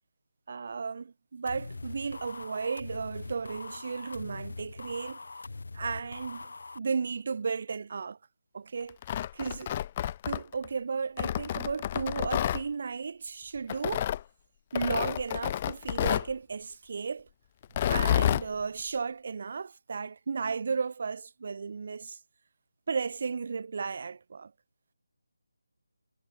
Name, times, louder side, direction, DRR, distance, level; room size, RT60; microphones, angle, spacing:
voice 1, 0.5-5.2 5.7-6.5 6.7-8.2 8.5-9.0 9.3-9.8 10.3-14.1 14.7-17.3 17.8-22.2 22.9-24.5, right 5 dB, 45° right, 2.6 m, -34 dB
sound 1, 1.5-6.8, left 3 dB, 70° left, 6.4 m, -42 dB
Tearing, 8.9-10.7 11.2-12.6 13.7-14.2 14.7-16.3 17.6-18.5, left 11 dB, 25° left, 2.1 m, -29 dB
figure-of-eight pair, 165°, 0 cm